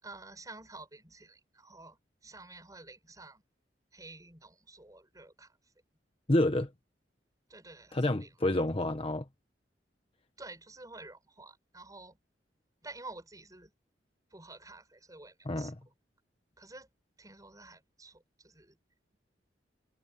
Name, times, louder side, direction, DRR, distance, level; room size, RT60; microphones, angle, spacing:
voice 1, 0.0-3.4 3.9-5.6 7.5-8.6 10.4-12.2 12.8-13.7 14.3-15.7 16.6-16.9 17.2-18.8, right 2 dB, 20° right, 7.0 m, -50 dB
voice 2, 6.3-6.7 7.9-9.3 15.4-15.8, left 1 dB, 30° left, 1.3 m, -28 dB
head